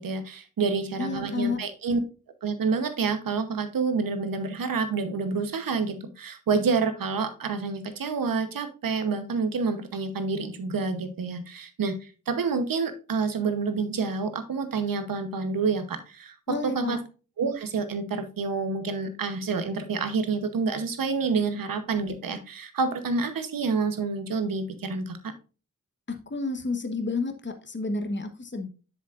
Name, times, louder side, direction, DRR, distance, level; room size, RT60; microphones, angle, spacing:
voice 1, 0.0-2.0 2.4-11.9 12.3-16.3 16.6-17.0 17.4-25.3, right 4 dB, 90° right, 9 dB, 1.0 m, -28 dB
voice 2, 1.0-1.6 16.5-17.0 26.1-28.7, left 3 dB, 35° left, 6 dB, 1.1 m, -30 dB
7.2 x 7.2 x 2.5 m, 0.33 s
cardioid pair, 40°, 33 cm